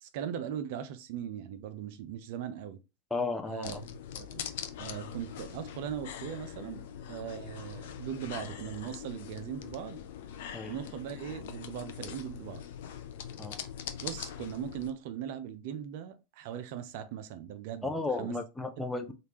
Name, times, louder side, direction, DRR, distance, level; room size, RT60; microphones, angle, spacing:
voice 1, 0.0-2.8 3.5-3.8 4.1-4.5 4.8-6.8 7.1-10.0 10.7-12.6 14.0-17.9 18.2-18.3, right 9 dB, 60° right, 0.4 m, -39 dB
voice 2, 3.1-3.8 10.5-10.7 13.4-13.6 17.8-19.1, left 3 dB, 10° left, 0.5 m, -34 dB
sound 1, 3.6-14.9, left 9 dB, 65° left, 0.4 m, -42 dB
3.2 x 2.5 x 2.9 m
hypercardioid pair, 90°, 0 cm